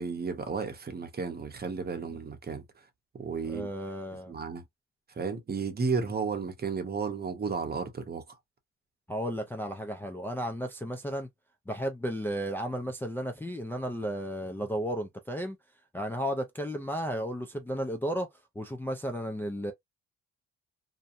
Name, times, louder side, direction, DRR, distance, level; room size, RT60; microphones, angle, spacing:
voice 1, 0.0-2.9 3.1-3.7 4.3-4.6 5.1-8.4, right 5 dB, 35° right, 0.8 m, -33 dB
voice 2, 3.5-4.3 9.1-11.3 11.7-15.6 15.9-18.3 18.6-19.7, equal, 5° left, 0.4 m, -33 dB
2.7 x 2.2 x 2.5 m
cardioid pair, 90°, 30 cm